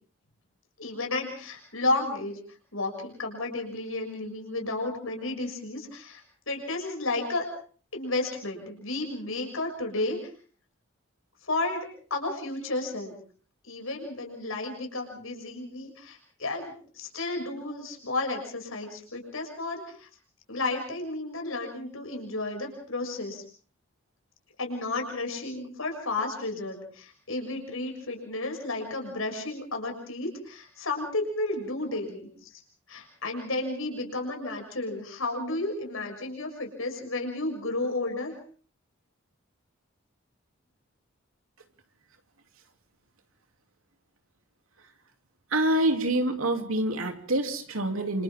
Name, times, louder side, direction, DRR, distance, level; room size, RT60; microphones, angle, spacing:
voice 1, 0.8-2.4 2.7-7.4 7.9-10.2 11.5-13.1 13.6-20.1 20.5-23.4 24.6-32.6 32.9-38.3, left 2 dB, 80° left, 3 dB, 6.7 m, -32 dB
voice 2, 45.5-48.2, right 1 dB, 85° right, 5 dB, 3.0 m, -26 dB
29.0 x 27.5 x 3.7 m, 0.44 s
head